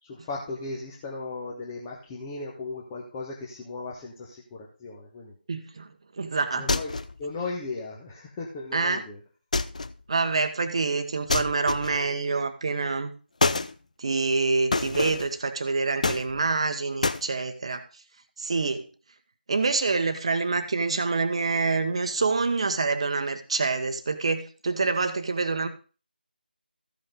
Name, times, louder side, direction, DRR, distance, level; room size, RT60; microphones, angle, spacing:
voice 1, 0.0-5.3 6.5-9.2, left 3 dB, 15° left, -4 dB, 1.3 m, -36 dB
voice 2, 5.5-5.9 6.2-6.7 8.7-9.0 10.1-13.1 14.0-17.8 18.4-18.9 19.5-25.7, right 4 dB, 35° right, 8 dB, 1.2 m, -26 dB
sound 1, 6.7-7.2 9.5-10.0 11.3-12.1 13.4-13.7 14.7-15.3 16.0-16.6 17.0-17.3, left 3 dB, 45° left, 0.6 m, -27 dB
14.5 x 5.7 x 5.0 m, 0.35 s
figure-of-eight pair, 160°, 5 cm